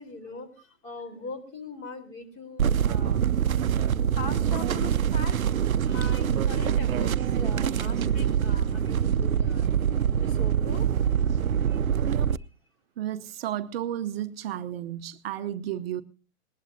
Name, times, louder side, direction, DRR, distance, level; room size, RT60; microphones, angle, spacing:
voice 1, 0.0-3.2 4.2-5.5 5.8-9.7 10.2-10.9 11.7-11.8 12.4-12.5, left 3 dB, 30° left, 4.0 m, -41 dB
raw dyingbattery, 2.6-12.4, right 8 dB, 80° right, 0.6 m, -25 dB
voice 2, 13.0-16.0, right 11 dB, 45° right, 0.8 m, -32 dB
19.5 x 19.0 x 2.7 m
figure-of-eight pair, 110°, 41 cm